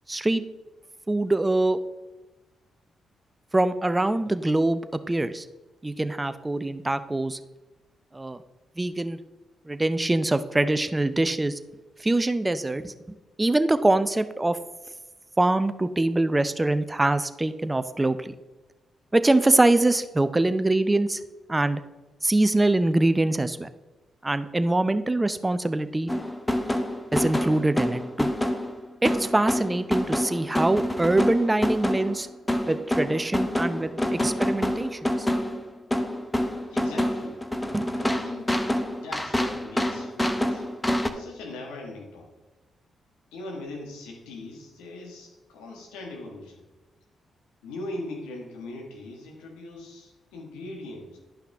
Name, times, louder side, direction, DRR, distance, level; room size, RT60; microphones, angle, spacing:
voice 1, 0.1-0.4 1.1-1.8 3.5-5.4 5.8-7.4 8.1-8.4 8.8-9.2 9.7-11.6 12.0-12.9 13.4-14.6 15.4-18.3 19.1-21.2 21.5-21.8 22.2-23.7 24.2-26.1 27.1-28.3 29.0-32.3 32.7-35.3 37.7-37.9, right 2 dB, 20° right, 12 dB, 0.6 m, -24 dB
sound 1, 26.1-41.1, left 1 dB, 15° left, 1.0 m, -27 dB
voice 2, 36.7-37.4 37.9-38.6 39.0-40.6 41.1-42.3 43.3-46.5 47.6-51.2, left 2 dB, 85° left, 0 dB, 1.7 m, -40 dB
11.5 x 5.7 x 3.5 m, 1.1 s
hypercardioid pair, 45°, 0 cm